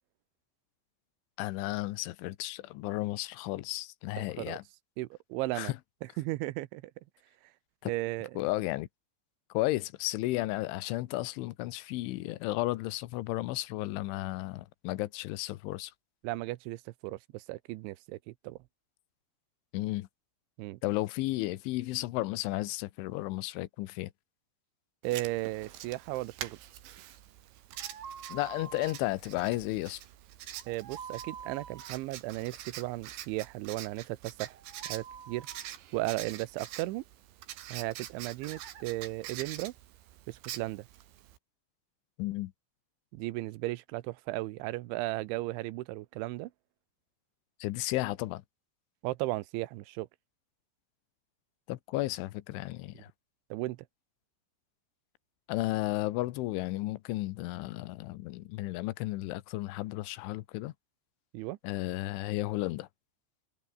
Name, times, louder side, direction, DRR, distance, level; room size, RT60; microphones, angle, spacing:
voice 1, 1.4-4.6 5.6-5.8 7.8-7.9 8.4-8.9 9.5-15.9 19.7-20.1 20.8-24.1 28.3-30.0 42.2-42.5 47.6-48.4 51.7-53.1 55.5-60.7 61.6-62.9, left 18 dB, 85° left, 3.4 m, -33 dB
voice 2, 4.2-4.6 5.0-5.7 6.2-6.9 7.9-8.4 16.2-18.6 20.6-20.8 25.0-26.6 30.7-34.6 34.9-35.5 35.9-37.0 37.7-39.7 40.3-40.9 43.1-46.5 49.0-50.1 52.9-53.0 53.5-53.8 61.3-61.6, right 19 dB, 90° right, 3.2 m, -35 dB
Writing, 25.0-41.4, right 12 dB, 75° right, 4.1 m, -46 dB
sound 1, 27.7-29.0 30.5-31.9 34.4-35.7 38.4-38.8, right 7 dB, 55° right, 4.9 m, -47 dB
omnidirectional pair, 5.4 m